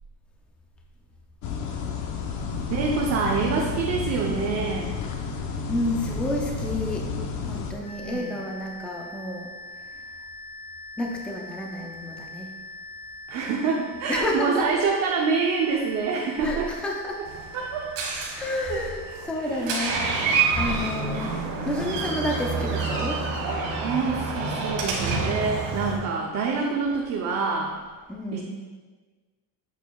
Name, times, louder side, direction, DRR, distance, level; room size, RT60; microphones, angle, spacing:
sound 1, 1.4-7.7, left 4 dB, 45° left, 0.7 m, -31 dB
voice 1, 2.7-4.9 8.0-8.3 13.3-16.7 17.5-17.9 18.7-18.8 19.4-19.7 23.8-27.7 28.3-28.4, right 4 dB, 40° right, -1 dB, 0.6 m, -26 dB
voice 2, 5.7-7.1 7.5-9.5 9.8-10.0 11.0-12.5 14.1-14.8 16.4-17.2 18.3-21.3 21.6-23.2 28.1-28.4, left 1 dB, 5° left, 0 dB, 0.4 m, -30 dB
sound 2, 7.8-19.2, left 1 dB, 75° left, 2.0 m, -43 dB
Door, 17.3-26.0, right 4 dB, 85° right, 1.7 m, -28 dB
8.1 x 6.5 x 2.3 m, 1.4 s
cardioid pair, 165°, 41 cm